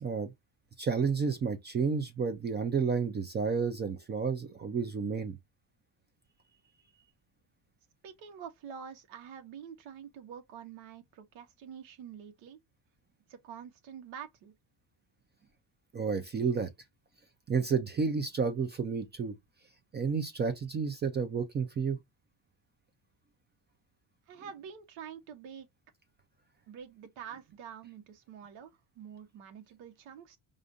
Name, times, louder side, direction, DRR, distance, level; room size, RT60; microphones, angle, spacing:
voice 1, 0.0-0.3 0.8-5.4 15.9-16.7 17.5-19.3 19.9-22.0, right 5 dB, 25° right, 0.3 m, -31 dB
voice 2, 8.0-12.6 13.3-14.5 24.3-25.7 26.7-30.4, right 8 dB, 90° right, 1.1 m, -47 dB
4.9 x 2.4 x 2.5 m
cardioid pair, 165°, 44 cm